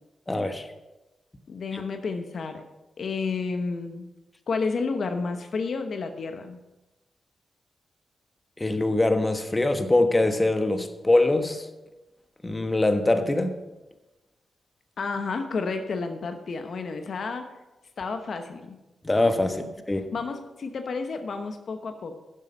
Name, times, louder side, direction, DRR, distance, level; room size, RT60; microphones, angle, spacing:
voice 1, 0.3-0.6 8.6-11.6 12.4-13.5 19.0-19.6 19.9-20.0, left 2 dB, 25° left, 8 dB, 1.2 m, -23 dB
voice 2, 1.5-2.6 3.0-4.1 4.5-6.6 15.0-17.4 18.0-18.8 20.1-22.1, left 4 dB, 65° left, 7 dB, 0.9 m, -31 dB
11.5 x 7.5 x 5.3 m, 1.1 s
supercardioid pair, 50°, 0 cm